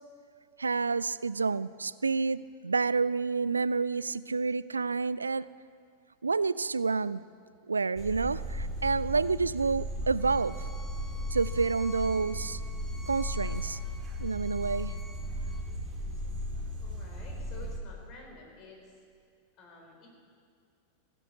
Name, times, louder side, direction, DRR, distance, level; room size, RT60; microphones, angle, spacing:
voice 1, 0.6-5.5 6.2-7.2 7.7-10.6 11.3-12.6 13.1-13.8 14.2-14.9, right 4 dB, 75° right, 18 dB, 0.3 m, -29 dB
sound 1, 8.0-17.8, equal, 30° right, 2.0 m, -36 dB
Bowed string instrument, 10.2-15.6, left 1 dB, 5° left, 1.5 m, -51 dB
voice 2, 16.8-18.8 19.6-20.1, left 3 dB, 40° left, 0 dB, 4.3 m, -50 dB
16.5 x 9.9 x 8.5 m, 2.2 s
figure-of-eight pair, 90°, 0 cm